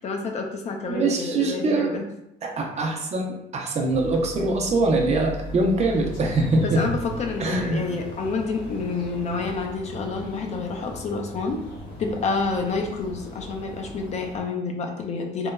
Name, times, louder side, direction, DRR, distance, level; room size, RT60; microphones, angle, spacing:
voice 1, 0.0-2.1 6.6-11.6 12.0-15.5, left 4 dB, 40° left, 3 dB, 0.4 m, -28 dB
voice 2, 0.9-2.0 2.4-6.8 7.4-7.8, right 2 dB, 40° right, 1 dB, 0.6 m, -23 dB
sound 1, 3.9-14.4, equal, 70° left, 1.4 m, -38 dB
3.0 x 2.1 x 2.3 m, 0.81 s
cardioid pair, 110°, 17 cm